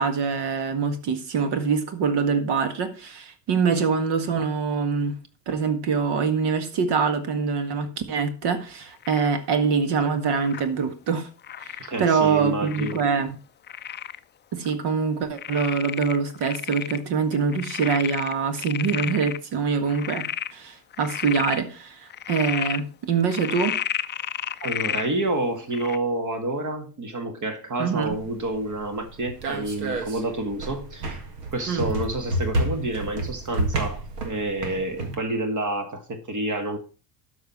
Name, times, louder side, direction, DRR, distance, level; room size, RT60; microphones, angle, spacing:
voice 1, 0.0-5.2 5.5-11.3 11.6-13.4 14.5-20.3 20.5-23.8 27.8-28.2 31.7-31.9, right 5 dB, 55° right, 10 dB, 1.9 m, -24 dB
Frog, 9.0-9.4 10.3-10.7 11.4-11.9 12.7-13.1 13.7-14.2 14.7-14.8 15.4-17.0 17.3-19.4 19.9-20.5 20.9-21.6 22.1-22.8 23.3-25.1 25.7-26.0, left 10 dB, 25° left, 0.5 m, -32 dB
voice 2, 11.8-13.0 24.6-31.2 31.5-36.8, right 2 dB, 40° right, 7 dB, 2.0 m, -29 dB
sound 1, 28.0-35.2, right 2 dB, 80° right, 1.9 m, -30 dB
12.5 x 4.9 x 5.9 m, 0.35 s
hypercardioid pair, 60°, 48 cm